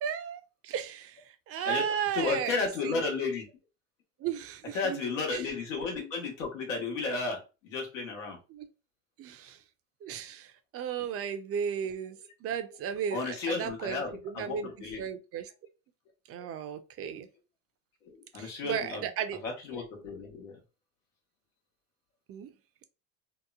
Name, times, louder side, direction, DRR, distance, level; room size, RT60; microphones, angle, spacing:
voice 1, 0.0-3.0 4.2-5.0 5.3-5.5 8.5-8.7 9.2-9.6 10.0-12.2 12.4-14.7 15.0-15.5 16.3-17.3 18.4-19.4 22.3-22.5, right 8 dB, 40° right, 0.5 m, -35 dB
voice 2, 2.1-3.5 4.7-8.4 13.1-15.0 18.0-19.1 19.4-20.5, left 4 dB, 90° left, 1.1 m, -33 dB
2.9 x 2.1 x 2.3 m
supercardioid pair, 95°, 37 cm